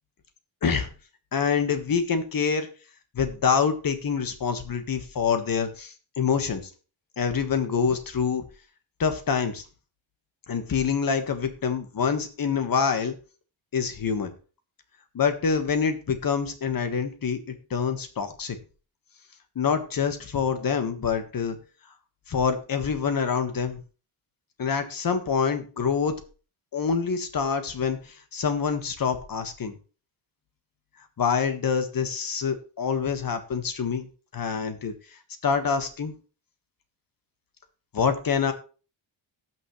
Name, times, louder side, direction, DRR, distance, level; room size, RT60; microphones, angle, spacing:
voice 1, 1.3-2.7 3.1-6.6 7.2-8.4 9.0-9.6 10.5-13.1 13.7-14.3 15.1-17.4 17.7-18.6 19.5-21.6 22.3-23.8 24.6-26.1 26.7-29.7 31.2-34.1 34.3-34.9 35.4-36.1 37.9-38.5, left 6 dB, 45° left, 8 dB, 1.6 m, -26 dB
18.0 x 6.2 x 3.1 m, 0.35 s
wide cardioid pair, 165°, 48 cm